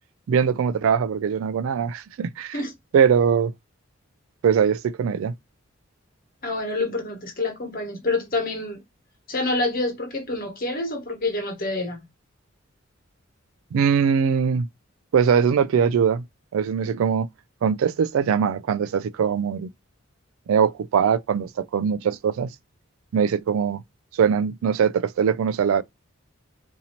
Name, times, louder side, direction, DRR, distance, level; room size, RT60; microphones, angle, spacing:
voice 1, 0.3-2.6 2.9-3.5 4.4-5.3 13.7-14.7 15.1-16.2 16.5-17.3 17.6-19.7 20.5-22.5 23.1-23.8 24.1-25.8, right 7 dB, 85° right, 0.3 m, -21 dB
voice 2, 6.4-8.8 9.3-12.1, left 2 dB, 45° left, 1.2 m, -27 dB
4.1 x 2.7 x 2.8 m
head